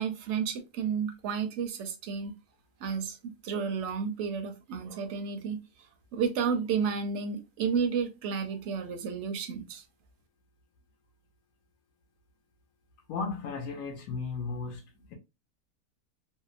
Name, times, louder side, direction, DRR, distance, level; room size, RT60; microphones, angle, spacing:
voice 1, 0.0-2.3 2.8-5.6 6.1-9.8, right 6 dB, 65° right, 0.8 m, -31 dB
voice 2, 13.1-15.1, left 4 dB, 75° left, 1.0 m, -35 dB
2.8 x 2.0 x 2.4 m
omnidirectional pair, 1.5 m